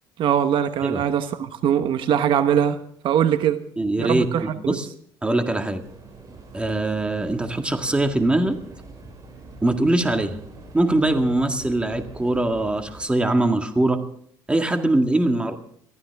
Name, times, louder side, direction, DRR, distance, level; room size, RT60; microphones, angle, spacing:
voice 1, 0.2-2.8 3.0-3.6 4.0-4.8, right 9 dB, 60° right, 1.2 m, -21 dB
voice 2, 3.8-4.9 5.2-5.8 6.5-8.6 9.6-10.4 10.7-14.0 14.5-15.6, right 2 dB, 10° right, 1.9 m, -22 dB
sound 1, 5.8-13.0, right 3 dB, 40° right, 7.2 m, -44 dB
23.0 x 14.0 x 3.5 m
cardioid pair, 110°, 9 cm